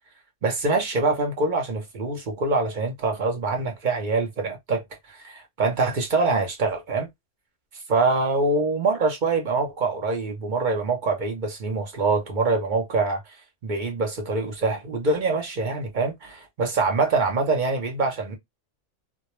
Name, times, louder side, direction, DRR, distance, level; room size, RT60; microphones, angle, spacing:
voice 1, 0.4-7.1 7.9-13.2 13.6-18.4, right 3 dB, 50° right, 0.7 m, -24 dB
2.2 x 2.2 x 2.9 m
omnidirectional pair, 1.2 m